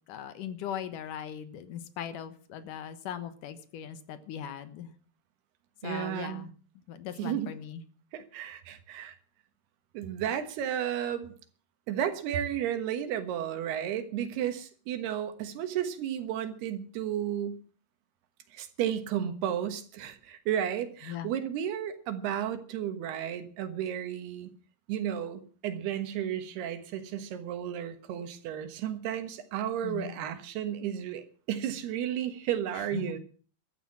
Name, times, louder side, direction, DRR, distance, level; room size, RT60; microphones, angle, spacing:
voice 1, 0.1-4.9 5.8-6.5 6.9-7.8 21.1-21.3 29.8-30.1 32.9-33.2, left 9 dB, 65° left, 11 dB, 2.4 m, -39 dB
voice 2, 5.8-6.5 7.2-7.5 8.1-9.2 9.9-11.3 11.9-17.6 18.5-24.5 24.9-33.2, right 10 dB, 75° right, 10 dB, 3.3 m, -33 dB
14.0 x 11.5 x 7.5 m, 0.42 s
omnidirectional pair, 4.7 m